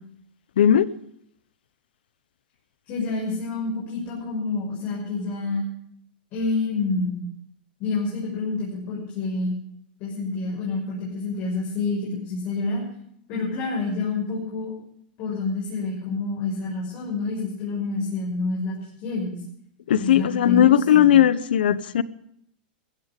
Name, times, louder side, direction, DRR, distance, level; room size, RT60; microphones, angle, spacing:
voice 1, 0.6-0.9 19.9-22.0, left 10 dB, 85° left, 0.7 m, -17 dB
voice 2, 2.9-5.6 6.3-7.2 7.8-9.6 10.0-12.8 13.3-14.7 15.2-18.7 19.0-19.4 20.0-21.1, left 3 dB, 45° left, 5.9 m, -28 dB
15.5 x 15.0 x 5.2 m
supercardioid pair, 140°, 5 cm